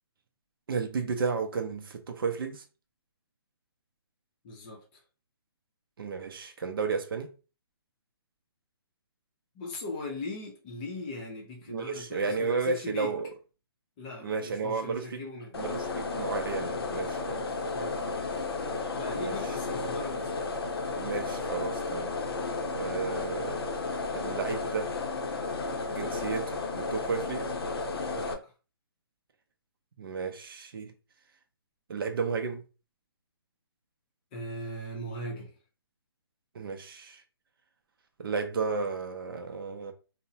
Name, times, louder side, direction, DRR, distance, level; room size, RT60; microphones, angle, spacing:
voice 1, 0.7-2.6 6.0-7.3 11.7-13.3 14.2-15.2 15.6-17.5 19.1-19.4 21.0-22.1 22.7-23.7 24.1-24.9 25.9-27.5 30.0-30.9 31.9-32.6 36.5-37.2 38.2-39.9, right 4 dB, 60° right, 0.5 m, -33 dB
voice 2, 4.4-5.0 9.5-13.1 14.0-15.5 17.7-18.2 19.0-20.5 28.1-28.5 34.3-35.5, left 2 dB, 20° left, 0.5 m, -39 dB
sound 1, 15.5-28.3, left 3 dB, 70° left, 0.6 m, -33 dB
2.8 x 2.0 x 2.7 m
hypercardioid pair, 160°, 13 cm